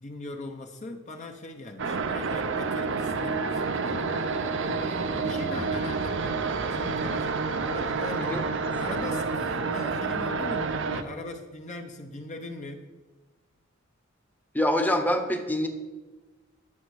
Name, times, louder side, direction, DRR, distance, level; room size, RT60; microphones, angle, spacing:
voice 1, 0.0-8.4 8.8-12.9, left 2 dB, 35° left, 4 dB, 0.8 m, -40 dB
sound 1, 1.8-11.0, right 4 dB, 65° right, 0.7 m, -29 dB
voice 2, 14.5-15.7, left 1 dB, 10° left, 5 dB, 1.0 m, -25 dB
11.0 x 7.0 x 6.4 m, 1.2 s
head